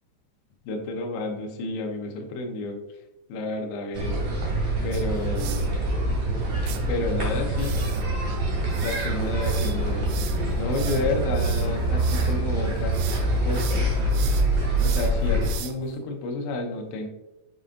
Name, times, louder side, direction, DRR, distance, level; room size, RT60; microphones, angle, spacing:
voice 1, 0.7-2.8 3.3-4.4 4.8-5.8 6.9-7.8 8.8-10.1 10.6-13.0 13.4-13.9 14.8-17.1, left 2 dB, 75° left, 2 dB, 2.9 m, -30 dB
sound 1, 3.9-15.6, right 1 dB, 45° right, 2.7 m, -25 dB
sound 2, 4.9-5.7 6.7-6.8 7.6-12.4 12.7-13.2 13.5-15.9, right 11 dB, 85° right, 2.3 m, -39 dB
8.0 x 5.5 x 2.5 m, 0.98 s
omnidirectional pair, 5.3 m